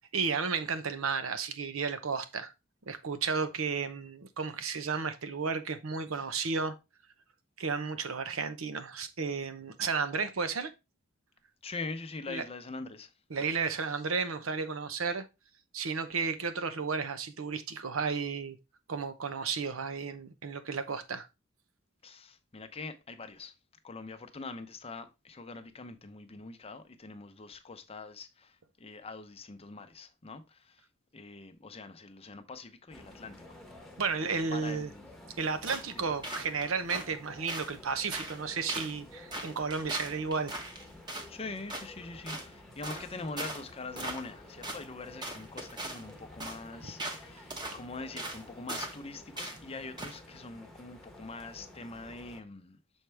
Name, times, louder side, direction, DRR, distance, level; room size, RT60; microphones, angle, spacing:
voice 1, 0.1-2.5 2.9-6.7 7.6-10.7 12.3-12.4 13.3-15.3 15.7-18.6 18.9-21.3 34.0-34.9 35.4-40.5, right 5 dB, 85° right, 0.8 m, -33 dB
voice 2, 11.6-13.1 22.0-23.5 23.8-30.8 31.1-33.4 34.5-35.1 35.9-36.1 41.3-52.8, left 3 dB, 30° left, 0.7 m, -43 dB
sound 1, 32.9-52.4, left 1 dB, ahead, 1.1 m, -52 dB
sound 2, 35.6-35.9 36.2-37.1 37.5-37.8 38.1-38.4 38.7-38.9 39.3-41.3 41.7-41.9 42.3-42.5 42.8-43.1 43.4-43.6 44.0-44.4 44.6-44.8 45.2-46.1 46.4-46.6 47.0-47.2 47.5-47.8 48.2-48.4 48.7-49.0 49.4-49.6 50.0-50.2, right 1 dB, 20° right, 1.0 m, -39 dB
6.4 x 4.4 x 3.4 m
head